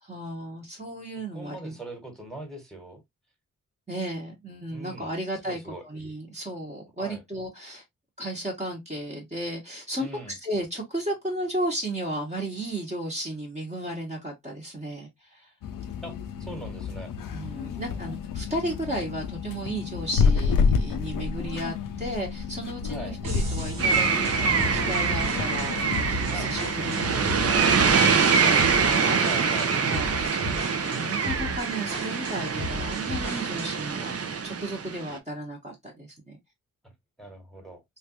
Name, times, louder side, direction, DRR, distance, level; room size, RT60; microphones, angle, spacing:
voice 1, 0.0-1.8 3.9-7.8 8.2-15.5 17.3-27.1 27.7-29.5 29.8-34.2 34.4-36.4, right 1 dB, 20° right, 1.1 m, -34 dB
voice 2, 1.3-3.0 4.7-5.1 5.4-5.8 7.0-7.2 10.0-10.3 16.0-16.1 16.4-17.1 22.9-23.2 26.3-26.5 26.8-27.8 29.2-29.7 30.5-30.7 36.8-36.9 37.2-37.8, right 2 dB, ahead, 1.3 m, -41 dB
sound 1, 15.6-27.7, left 5 dB, 80° left, 0.5 m, -30 dB
sound 2, 23.2-33.9, right 1 dB, 90° right, 1.1 m, -34 dB
sound 3, 23.8-35.1, right 5 dB, 45° right, 0.6 m, -25 dB
3.3 x 2.4 x 2.8 m
wide cardioid pair, 85°, 33 cm